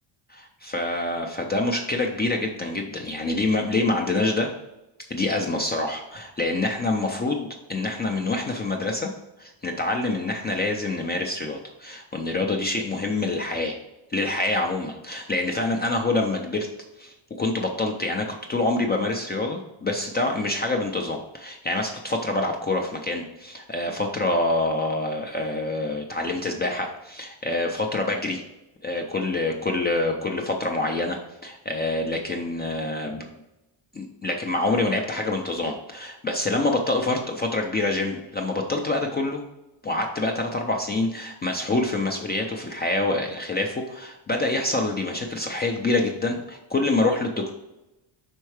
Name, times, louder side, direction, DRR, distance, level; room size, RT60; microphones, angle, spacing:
voice 1, 0.3-4.5 5.1-9.1 9.4-13.8 14.1-16.7 17.0-28.4 28.8-33.2 33.9-39.4 39.8-47.5, left 2 dB, 25° left, 1 dB, 0.3 m, -26 dB
5.5 x 4.4 x 4.7 m, 0.95 s
cardioid pair, 175°, 49 cm